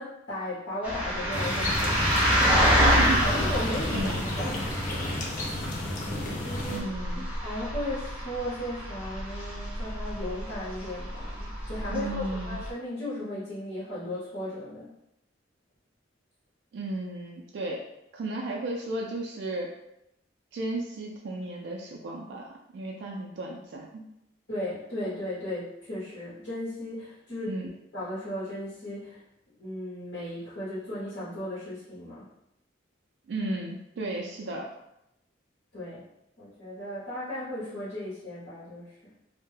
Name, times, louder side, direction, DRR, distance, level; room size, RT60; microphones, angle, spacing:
voice 1, 0.0-2.3 2.6-2.9 3.2-5.8 6.4-14.9 24.5-29.2 29.6-32.3 35.7-36.0 36.4-39.0, left 1 dB, 65° left, -10 dB, 0.9 m, -36 dB
sound 1, 0.8-12.7, equal, 5° right, 0.6 m, -28 dB
sound 2, 1.3-6.8, left 1 dB, 45° left, 0.4 m, -32 dB
voice 2, 2.8-3.3 3.9-4.3 6.7-7.3 11.9-12.6 16.7-17.8 18.1-19.7 20.5-22.5 22.7-24.1 27.5-27.7 33.3-34.7, right 2 dB, 65° right, 0 dB, 0.3 m, -34 dB
2.2 x 2.0 x 3.1 m, 0.84 s
head